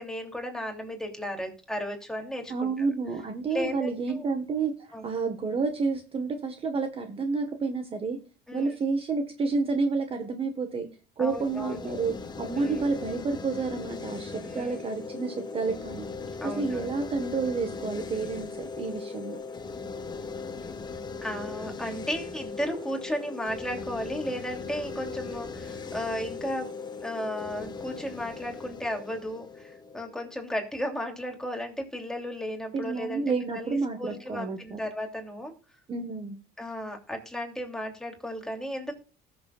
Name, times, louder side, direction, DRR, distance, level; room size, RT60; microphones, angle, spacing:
voice 1, 0.0-2.9 3.5-4.3 4.9-5.1 8.5-8.7 11.2-11.8 12.6-12.9 14.4-14.8 16.4-16.9 21.2-26.7 27.0-33.2 33.5-35.5 36.6-38.9, equal, 5° left, 2 dB, 3.0 m, -34 dB
voice 2, 2.5-4.7 5.0-8.2 8.5-10.9 11.2-16.1 16.4-19.4 32.7-34.8 35.9-36.4, right 4 dB, 30° right, 6 dB, 1.5 m, -30 dB
sound 1, 11.3-30.3, left 4 dB, 20° left, 1.4 m, -39 dB
19.5 x 7.1 x 2.4 m, 0.37 s
cardioid pair, 135°, 19 cm